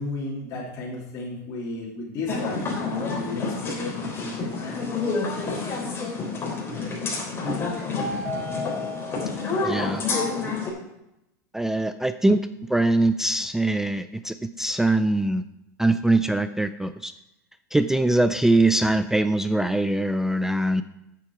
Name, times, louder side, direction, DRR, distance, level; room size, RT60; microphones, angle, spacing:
voice 1, 0.0-4.9 8.1-8.2 14.7-14.8, left 2 dB, 45° left, -6 dB, 3.1 m, -34 dB
sound 1, 2.3-10.7, left 4 dB, 25° left, 3.6 m, -28 dB
voice 2, 9.6-10.0 11.5-15.4 15.8-17.1 17.7-20.8, right 2 dB, 5° right, 10 dB, 0.3 m, -22 dB
8.4 x 7.7 x 4.8 m, 0.87 s
hypercardioid pair, 110°, 9 cm